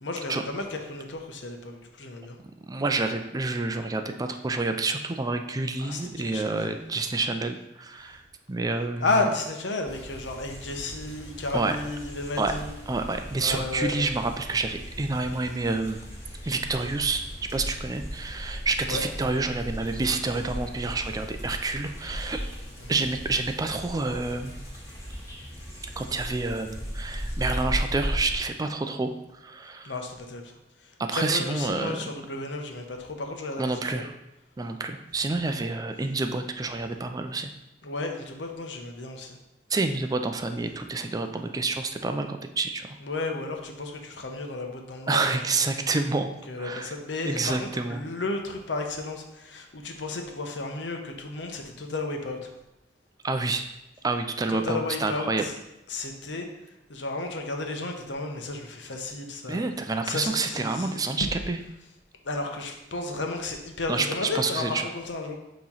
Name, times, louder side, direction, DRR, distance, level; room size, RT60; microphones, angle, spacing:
voice 1, 0.0-2.4 5.8-6.7 9.0-12.7 13.4-14.0 18.8-19.0 22.8-23.0 29.8-34.1 37.8-39.4 43.0-45.4 46.5-52.5 54.5-55.6 55.9-56.5 56.9-59.6 60.0-61.1 62.2-65.4, left 3 dB, 85° left, 3 dB, 0.9 m, -33 dB
voice 2, 2.7-8.2 8.5-9.3 11.5-11.8 12.4-12.5 12.9-16.0 16.5-17.2 17.5-22.4 22.9-24.5 26.0-29.1 29.4-29.9 31.1-32.0 33.6-34.1 34.6-37.5 39.7-43.0 45.1-46.3 46.6-46.9 47.2-48.1 53.2-53.7 54.0-55.5 59.5-61.6 63.9-64.9, right 3 dB, 20° right, 6 dB, 0.4 m, -28 dB
sound 1, 9.9-28.4, equal, 20° left, 2.2 m, -37 dB
7.2 x 3.1 x 5.5 m, 0.92 s
head